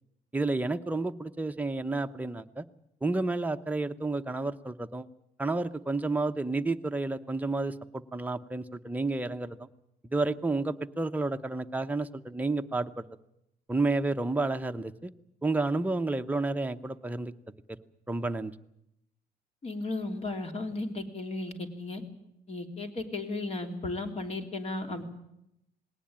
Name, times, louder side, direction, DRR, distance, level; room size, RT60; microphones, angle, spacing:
voice 1, 0.3-2.6 3.0-5.1 5.4-9.7 10.1-13.0 13.7-15.1 15.4-17.3 17.7-17.8 18.1-18.5, right 2 dB, 10° right, 7 dB, 0.9 m, -30 dB
voice 2, 19.6-22.0 22.5-25.0, left 2 dB, 40° left, 5 dB, 3.2 m, -35 dB
20.0 x 18.0 x 8.8 m, 0.82 s
cardioid pair, 110°, 17 cm